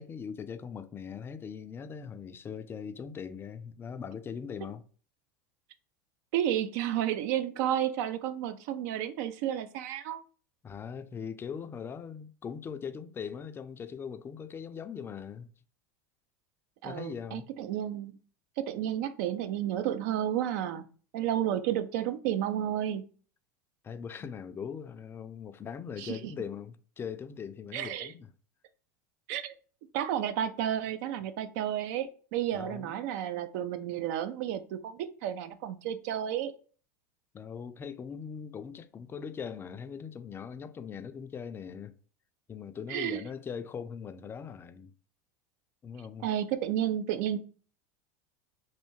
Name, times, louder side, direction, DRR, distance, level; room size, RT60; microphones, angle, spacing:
voice 1, 0.0-4.8 10.6-15.5 16.8-17.5 23.8-28.3 32.5-32.9 37.3-41.9 42.5-44.9 45.8-46.3, left 7 dB, 25° left, 0.3 m, -40 dB
voice 2, 6.3-10.2 16.8-18.2 18.6-20.8 21.1-23.0 26.0-26.2 27.7-28.1 29.3-29.5 29.9-36.5 42.9-43.2 46.2-47.4, right 11 dB, 65° right, 0.4 m, -31 dB
3.2 x 2.6 x 3.0 m
hypercardioid pair, 100°, 9 cm